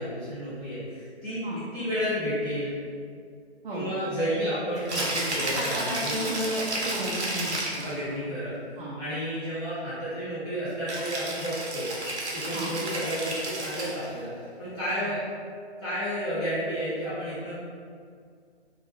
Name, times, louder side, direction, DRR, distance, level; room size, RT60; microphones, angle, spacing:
voice 1, 0.0-2.8 3.7-6.2 7.8-8.6 9.0-11.9 12.3-15.2 15.8-17.5, equal, 20° left, -13 dB, 0.7 m, -31 dB
Rattle (instrument), 4.8-7.9 10.9-14.1, right 1 dB, 90° right, 0.8 m, -32 dB
voice 2, 5.5-8.1 8.8-9.0 12.5-12.7 15.0-15.1, equal, 50° right, -6 dB, 0.5 m, -33 dB
2.5 x 2.2 x 2.9 m, 2.1 s
figure-of-eight pair, 150°, 33 cm